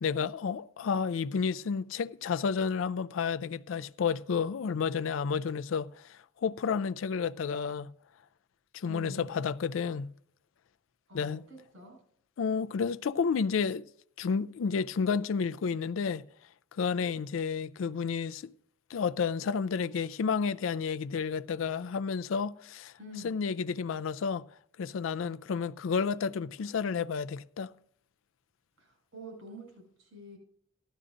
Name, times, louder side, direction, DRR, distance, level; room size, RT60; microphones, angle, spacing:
voice 1, 0.0-7.9 8.7-10.1 11.1-11.4 12.4-13.9 14.2-16.2 16.7-18.5 18.9-22.9 23.2-24.4 24.8-27.7, left 6 dB, 75° left, 0.4 m, -31 dB
voice 2, 8.8-9.4 11.1-12.0 23.0-23.3 28.8-30.4, left 1 dB, 85° right, 5.4 m, -47 dB
16.0 x 12.0 x 2.6 m
head